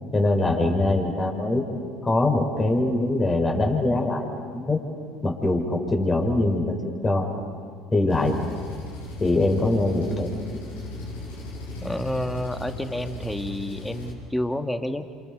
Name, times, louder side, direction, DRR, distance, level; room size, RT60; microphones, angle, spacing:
voice 1, 0.1-1.6 2.0-4.3 4.5-4.8 5.2-6.8 7.0-7.3 7.9-8.3 9.2-10.3, left 2 dB, 25° left, 2 dB, 5.4 m, -22 dB
Engine, 8.1-14.1, left 2 dB, 85° left, 5.7 m, -37 dB
voice 2, 11.8-15.0, left 1 dB, 10° left, 7 dB, 1.9 m, -29 dB
28.0 x 27.5 x 5.3 m, 2.2 s
hypercardioid pair, 75°, 0 cm